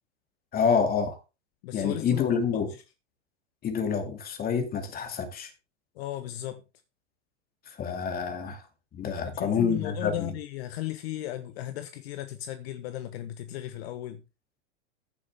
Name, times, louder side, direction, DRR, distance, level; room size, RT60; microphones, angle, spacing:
voice 1, 0.5-1.2 1.7-2.7 3.6-5.5 7.7-8.6 8.9-10.3, left 6 dB, 25° left, 2.5 m, -27 dB
voice 2, 1.6-2.6 5.9-6.6 9.2-14.2, left 14 dB, 55° left, 1.2 m, -36 dB
15.0 x 6.9 x 3.6 m
supercardioid pair, 135°, 37 cm